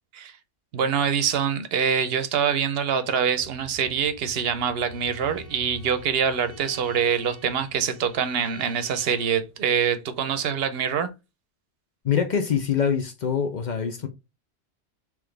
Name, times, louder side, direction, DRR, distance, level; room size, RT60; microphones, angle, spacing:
voice 1, 0.7-11.1, right 7 dB, 65° right, 0.8 m, -25 dB
Motorcycle, 3.4-11.0, equal, 75° left, 2.1 m, -49 dB
Bowed string instrument, 4.8-9.5, left 1 dB, 25° left, 1.2 m, -47 dB
voice 2, 12.0-14.1, left 7 dB, 50° left, 0.6 m, -24 dB
3.9 x 3.0 x 3.2 m
omnidirectional pair, 1.2 m